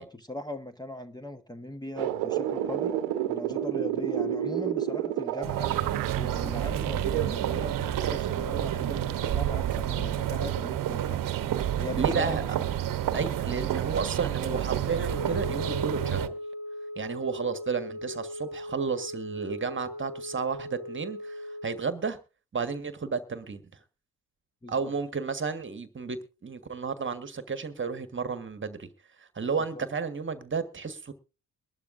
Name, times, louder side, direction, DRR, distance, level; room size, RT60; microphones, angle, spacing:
voice 1, 0.0-2.9 3.3-5.8 6.1-11.3 11.8-12.4 24.6-24.7 29.7-29.8, left 1 dB, 10° left, 1.2 m, -39 dB
sound 1, 2.0-8.3 8.7-9.2 10.6-10.8, right 11 dB, 80° right, 0.9 m, -31 dB
sound 2, 5.4-16.3, right 11 dB, 60° right, 1.0 m, -29 dB
voice 2, 12.0-12.4 13.1-16.3 17.0-22.2 22.5-23.6 24.7-28.9 29.3-31.1, right 5 dB, 30° right, 1.4 m, -32 dB
Wind instrument woodwind instrument, 14.8-21.9, left 1 dB, 45° left, 1.6 m, -38 dB
22.5 x 12.0 x 2.6 m
hypercardioid pair, 55°, 38 cm